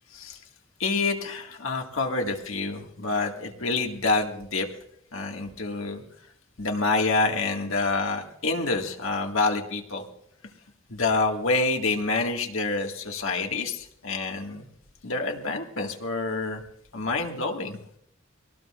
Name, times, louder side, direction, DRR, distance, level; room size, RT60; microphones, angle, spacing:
voice 1, 0.8-4.7 5.1-6.0 6.6-10.0 10.9-14.7 15.0-16.6 16.9-17.8, left 3 dB, 75° left, 2 dB, 2.0 m, -27 dB
23.5 x 18.5 x 2.5 m, 0.72 s
head